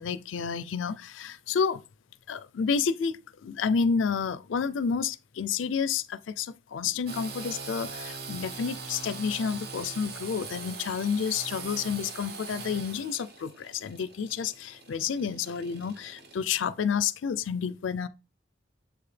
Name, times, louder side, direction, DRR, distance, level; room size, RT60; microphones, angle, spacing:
voice 1, 0.0-1.8 2.3-18.1, left 6 dB, 90° left, 0.4 m, -30 dB
Engine / Sawing, 7.1-16.6, right 4 dB, 55° right, 0.8 m, -42 dB
7.5 x 4.8 x 3.3 m
head